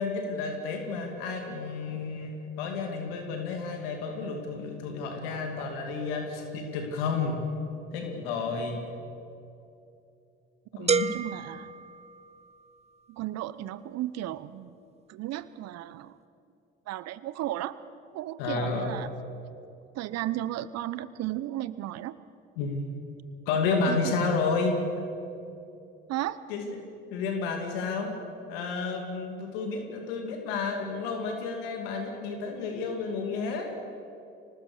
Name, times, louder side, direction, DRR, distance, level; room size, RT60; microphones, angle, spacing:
voice 1, 0.0-7.5 7.9-8.8 10.8-11.1 18.4-18.9 22.6-22.9 23.5-24.8 26.5-26.8 27.1-28.2 28.5-33.7, left 4 dB, 75° left, 4 dB, 2.5 m, -31 dB
voice 2, 10.7-11.7 13.1-14.8 15.1-16.2 16.9-17.8 18.1-19.1 19.9-22.2 23.9-24.1 26.1-26.4, right 14 dB, 60° right, 16 dB, 0.9 m, -34 dB
sound 1, 10.9-12.8, right 5 dB, 20° right, 0.7 m, -30 dB
24.5 x 19.5 x 6.7 m, 2.6 s
hypercardioid pair, 60°, 29 cm